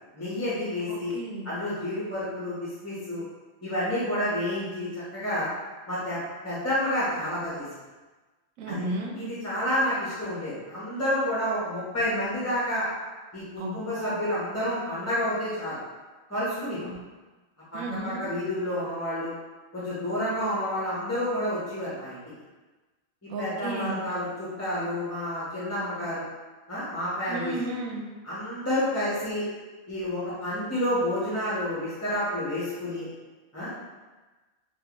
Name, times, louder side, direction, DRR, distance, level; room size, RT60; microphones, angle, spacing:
voice 1, 0.1-1.1 1.4-3.2 3.6-5.5 5.9-7.6 8.7-8.8 9.1-12.9 13.3-15.8 16.3-16.9 17.7-19.3 19.7-22.2 23.4-26.2 26.7-27.6 28.2-29.4 29.9-33.0 33.5-33.7, left 1 dB, 15° left, -10 dB, 0.6 m, -29 dB
voice 2, 0.9-1.5 8.6-9.1 13.6-14.1 16.9-17.0 17.7-18.3 23.3-24.0 27.3-28.1, right 2 dB, 85° right, 0 dB, 1.0 m, -33 dB
3.6 x 2.4 x 2.9 m, 1.2 s
omnidirectional pair, 1.4 m